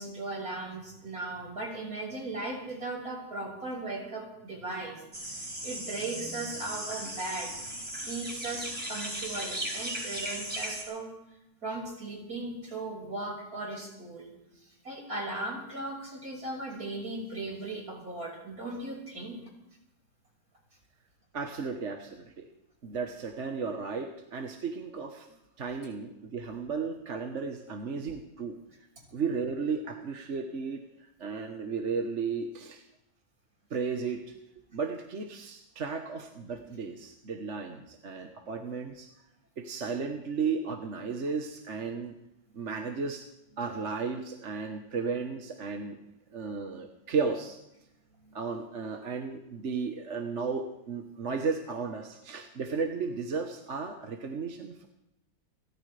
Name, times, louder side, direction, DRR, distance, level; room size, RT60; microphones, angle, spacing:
voice 1, 0.0-5.0 5.2-7.5 8.0-11.1 11.6-14.3 14.6-19.4, right 2 dB, 70° right, -2 dB, 6.3 m, -37 dB
sound 1, 5.1-10.8, right 1 dB, 25° right, 4.4 m, -37 dB
voice 2, 21.3-22.5 22.8-25.3 25.6-28.6 29.1-30.8 31.2-32.8 33.7-34.4 34.7-39.1 39.6-42.2 42.5-43.3 43.6-46.0 46.3-47.6 48.3-54.9, right 5 dB, 50° right, 4 dB, 1.5 m, -34 dB
29.0 x 14.0 x 3.4 m, 0.85 s
omnidirectional pair, 1.6 m